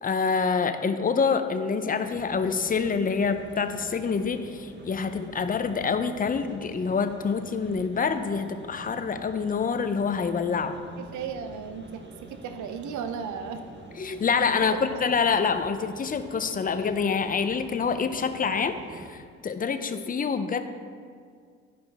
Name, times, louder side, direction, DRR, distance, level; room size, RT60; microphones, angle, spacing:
voice 1, 0.0-10.8 14.0-20.6, left 5 dB, 30° left, 9 dB, 0.5 m, -26 dB
sound 1, 2.0-19.1, right 2 dB, 35° right, 1.1 m, -46 dB
voice 2, 11.0-12.0 12.3-13.6, right 6 dB, 75° right, 8 dB, 0.6 m, -35 dB
11.5 x 5.2 x 3.4 m, 2.1 s
cardioid pair, 90°, 30 cm